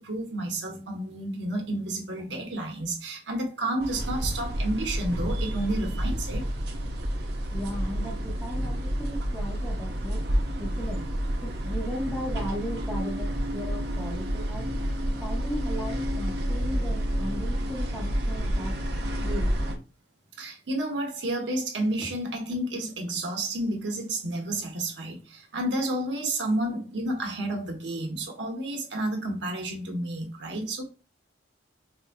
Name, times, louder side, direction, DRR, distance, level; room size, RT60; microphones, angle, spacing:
voice 1, 0.0-6.5 20.4-30.8, right 1 dB, 80° right, 1.1 m, -31 dB
sound 1, 3.8-19.7, equal, 60° right, 0.7 m, -29 dB
voice 2, 7.5-10.2 10.6-11.0 11.6-14.7 15.2-18.7 19.2-19.5, equal, 5° left, 0.9 m, -36 dB
4.9 x 2.5 x 2.3 m
head